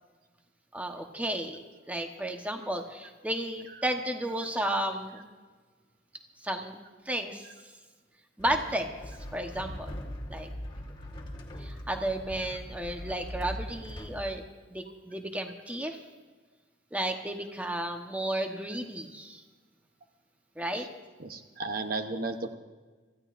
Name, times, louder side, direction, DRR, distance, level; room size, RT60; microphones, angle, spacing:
voice 1, 0.7-1.6 1.9-5.2 6.4-6.8 7.0-7.5 8.4-9.0 9.3-9.9 10.3-10.5 11.6-14.4 14.7-16.0 16.9-19.4 20.6-20.9, right 1 dB, 10° right, 3 dB, 1.1 m, -33 dB
voice 2, 4.6-4.9 7.4-7.5 20.7-20.9 21.2-22.5, right 3 dB, 55° right, 6 dB, 0.9 m, -35 dB
sound 1, 8.4-14.2, equal, 25° left, 1.8 m, -41 dB
25.5 x 15.0 x 2.6 m, 1.3 s
head